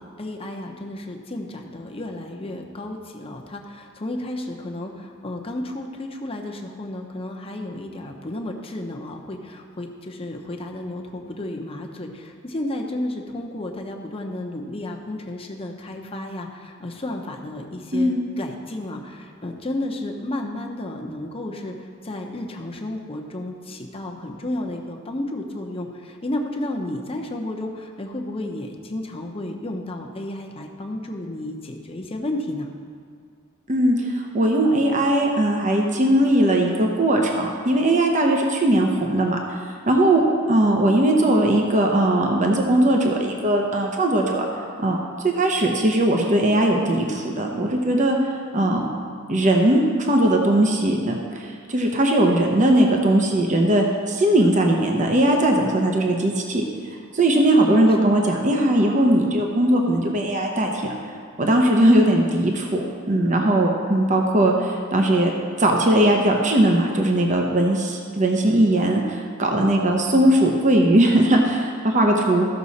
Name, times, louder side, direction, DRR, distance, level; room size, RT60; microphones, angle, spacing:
voice 1, 0.0-21.7 22.0-32.7 57.6-58.5 64.2-64.9, left 1 dB, 30° left, 1 dB, 0.9 m, -32 dB
voice 2, 33.7-39.4 39.9-40.2 40.5-44.5 44.8-45.0 45.2-48.2 48.5-48.8 49.3-56.6 57.1-60.9 61.4-65.3 65.6-72.5, right 1 dB, 40° right, 1 dB, 0.9 m, -19 dB
14.5 x 6.2 x 4.2 m, 2.2 s
head